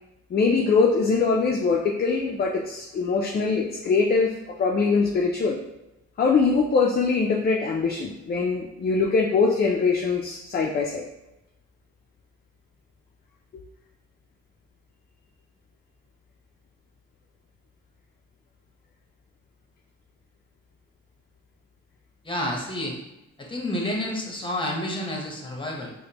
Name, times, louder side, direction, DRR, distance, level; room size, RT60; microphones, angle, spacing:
voice 1, 0.3-5.6 6.2-11.1, left 4 dB, 35° left, 0 dB, 0.4 m, -22 dB
voice 2, 22.2-23.0 23.4-25.9, left 1 dB, 15° left, 0 dB, 0.9 m, -29 dB
4.9 x 2.1 x 2.8 m, 0.92 s
cardioid pair, 90°, 30 cm